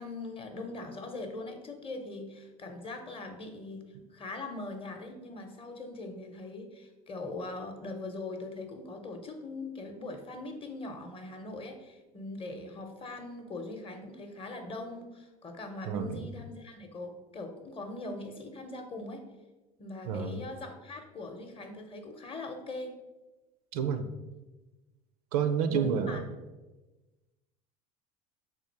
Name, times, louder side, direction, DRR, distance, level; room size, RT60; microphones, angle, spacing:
voice 1, 0.0-19.2 19.8-22.9 25.7-26.2, left 2 dB, 30° left, 5 dB, 0.7 m, -41 dB
voice 2, 15.9-16.3 20.1-20.4 23.7-24.1 25.3-26.2, right 6 dB, 80° right, 8 dB, 0.4 m, -29 dB
3.7 x 2.4 x 4.5 m, 1.1 s
hypercardioid pair, 80°, 19 cm